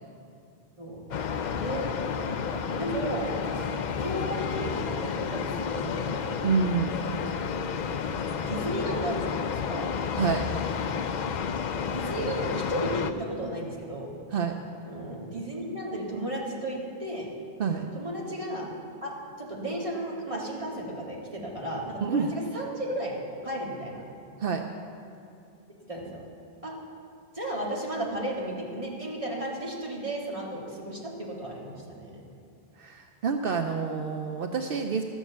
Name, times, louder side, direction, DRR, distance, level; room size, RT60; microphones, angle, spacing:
sound 1, 1.1-13.1, left 6 dB, 55° left, 0.5 m, -31 dB
voice 1, 1.5-1.9 2.2-6.3 7.1-7.4 8.4-9.9 11.7-14.1 14.9-17.3 17.9-18.7 19.0-23.1 23.4-24.0 25.9-26.2 26.6-26.7 27.3-32.2, right 1 dB, 30° right, -4 dB, 2.2 m, -34 dB
voice 2, 6.4-7.0 10.1-10.5 14.3-14.5 17.6-17.9 22.0-22.3 24.4-24.6 32.8-35.0, right 5 dB, 65° right, 5 dB, 0.8 m, -27 dB
12.5 x 7.2 x 7.2 m, 2.6 s
omnidirectional pair, 1.1 m